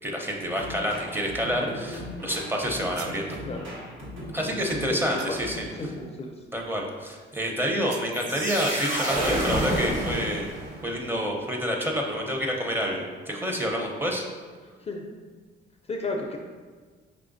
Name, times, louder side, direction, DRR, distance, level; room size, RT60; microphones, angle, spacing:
voice 1, 0.0-3.3 4.3-5.7 6.5-10.5 10.8-14.2, equal, 10° right, 0 dB, 0.6 m, -28 dB
sound 1, 0.6-6.1, equal, 80° right, 1.2 m, -38 dB
sound 2, 2.7-3.3 5.2-5.6 7.9-8.2, right 6 dB, 60° right, 0.5 m, -44 dB
voice 2, 5.8-6.3 14.8-15.0 15.9-16.4, left 3 dB, 30° left, 1 dB, 0.4 m, -33 dB
sound 3, 8.1-10.9, right 1 dB, 40° right, 1.2 m, -28 dB
4.8 x 3.1 x 2.6 m, 1.5 s
cardioid pair, 90°, 20 cm